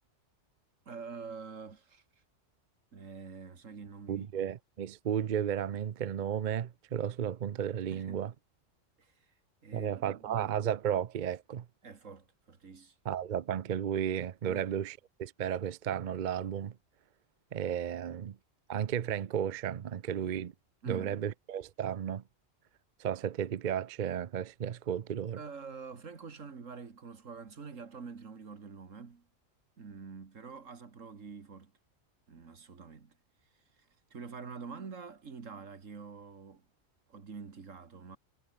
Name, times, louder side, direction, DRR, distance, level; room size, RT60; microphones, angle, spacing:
voice 1, 0.9-2.0 2.9-4.3 7.9-8.3 9.0-9.3 9.6-10.5 11.8-13.0 14.5-14.7 20.8-21.2 25.4-29.3 29.8-31.7 32.3-33.1 33.8-36.7 37.1-38.2, right 5 dB, 85° right, 2.3 m, -46 dB
voice 2, 4.1-8.3 9.7-11.6 13.1-16.7 17.5-18.4 18.7-20.5 20.9-22.2 23.0-25.4, right 9 dB, 50° right, 0.7 m, -33 dB
omnidirectional pair, 1.3 m